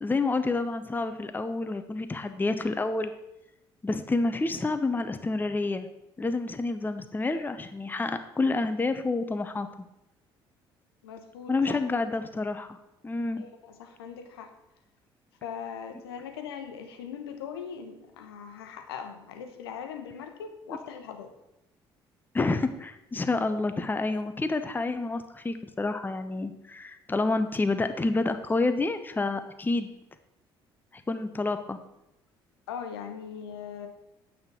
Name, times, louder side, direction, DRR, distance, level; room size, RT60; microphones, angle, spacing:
voice 1, 0.0-3.1 3.8-5.9 6.2-9.7 11.5-12.8 13.0-13.4 22.3-29.9 30.9-31.8, left 3 dB, 15° left, 9 dB, 0.6 m, -28 dB
voice 2, 11.0-12.0 13.4-14.5 15.4-21.3 32.7-33.9, left 7 dB, 75° left, 6 dB, 0.8 m, -40 dB
8.7 x 3.5 x 6.1 m, 0.87 s
figure-of-eight pair, 50°, 13 cm